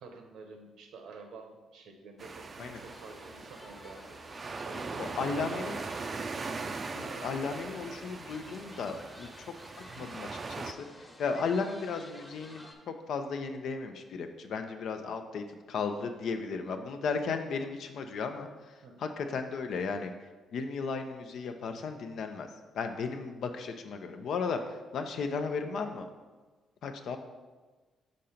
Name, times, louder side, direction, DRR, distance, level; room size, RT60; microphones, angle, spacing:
voice 1, 0.0-5.7 7.0-7.6 9.9-10.2 18.8-19.0, right 3 dB, 80° right, 4 dB, 0.9 m, -50 dB
sound 1, 2.2-10.7, right 4 dB, 40° right, 0.4 m, -40 dB
sound 2, 2.8-12.7, left 1 dB, 15° left, 1.0 m, -52 dB
voice 2, 5.0-5.8 6.9-9.5 9.8-10.3 10.6-20.1 20.5-22.5 22.7-26.1 26.8-27.2, left 5 dB, 70° left, 6 dB, 0.6 m, -35 dB
5.3 x 3.8 x 5.8 m, 1.3 s
cardioid pair, 90°, 0 cm